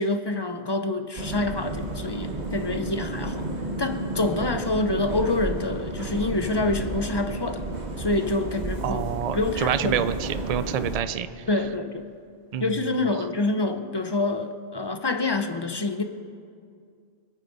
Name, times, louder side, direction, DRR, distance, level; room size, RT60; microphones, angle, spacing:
voice 1, 0.0-3.5 3.8-7.6 8.0-9.0 9.3-10.1 11.5-12.1 12.6-16.0, left 2 dB, 30° left, 7 dB, 0.5 m, -27 dB
sound 1, 1.2-11.0, right 2 dB, 35° right, 1.2 m, -32 dB
voice 2, 8.8-11.3 12.5-13.0, right 9 dB, 85° right, 12 dB, 0.3 m, -27 dB
25.0 x 9.3 x 4.0 m, 2.2 s
omnidirectional pair, 1.3 m